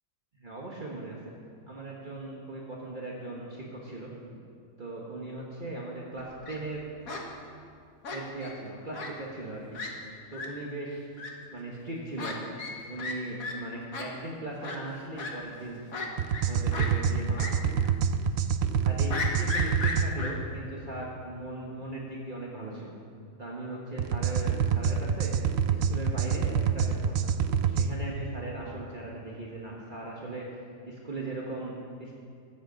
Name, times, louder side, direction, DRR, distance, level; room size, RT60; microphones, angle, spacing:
voice 1, 0.4-1.2 1.7-4.1 4.8-6.8 8.1-9.8 10.3-11.1 11.5-12.4 12.9-15.8 16.5-17.4 18.8-22.9 23.4-25.3 25.7-27.3 27.6-30.4 30.9-32.2, right 2 dB, 35° right, -4 dB, 1.5 m, -38 dB
Fowl, 6.2-6.6 7.1-7.2 8.0-8.5 8.9-9.1 9.4-9.5 9.7-9.9 10.3-10.5 11.2-11.3 12.2-12.3 12.6-12.7 13.0-13.1 13.4-13.5 13.9-14.0 14.6-14.8 15.2-15.3 15.9-16.4 16.7-16.9 17.4-17.5 17.8-17.9 19.1-20.3, left 3 dB, 85° left, 1.9 m, -34 dB
sound 1, 16.2-20.1 24.0-27.9, right 7 dB, 60° right, 0.7 m, -27 dB
20.0 x 8.1 x 5.2 m, 2.3 s
omnidirectional pair, 1.5 m